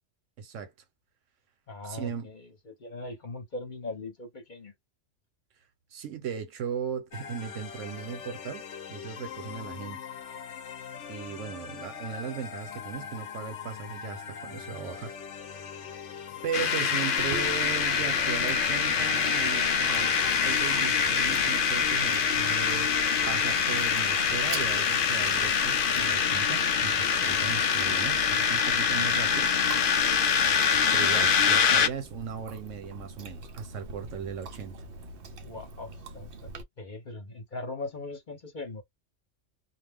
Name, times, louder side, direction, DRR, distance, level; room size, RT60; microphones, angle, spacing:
voice 1, 0.4-0.7 1.9-2.3 5.9-8.6 8.9-10.0 11.1-15.1 15.6-15.9 16.4-20.1 20.4-22.9 23.3-29.5 30.6-34.8, right 7 dB, 80° right, 1.1 m, -37 dB
voice 2, 1.7-4.7 35.3-36.5 36.8-38.8, left 2 dB, 40° left, 1.0 m, -40 dB
sound 1, 7.1-20.8, left 7 dB, 75° left, 1.0 m, -41 dB
sound 2, 16.5-31.9, left 6 dB, 60° left, 0.6 m, -25 dB
Chewing mastication, 17.2-36.6, right 2 dB, 55° right, 0.7 m, -44 dB
2.4 x 2.2 x 3.5 m
omnidirectional pair, 1.3 m